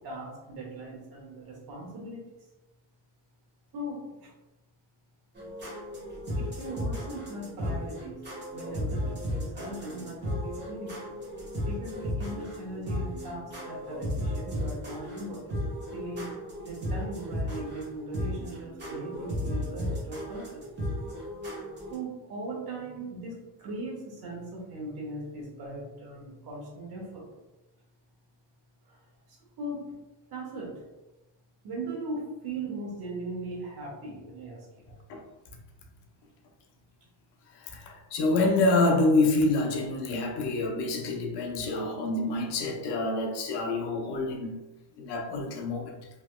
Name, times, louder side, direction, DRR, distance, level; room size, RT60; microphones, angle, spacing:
voice 1, 0.0-2.2 3.7-4.3 6.3-8.2 8.5-11.1 11.6-15.6 15.9-16.2 16.6-20.7 21.9-27.3 28.8-29.0 29.3-29.9 30.3-30.7 31.6-34.7, right 2 dB, 60° right, -2 dB, 1.2 m, -39 dB
sound 1, 5.4-21.9, equal, 25° right, 1.2 m, -35 dB
voice 2, 37.5-44.5 45.0-46.1, left 2 dB, 70° left, 2 dB, 0.7 m, -27 dB
3.4 x 2.8 x 2.2 m, 1.0 s
cardioid pair, 155°, 42 cm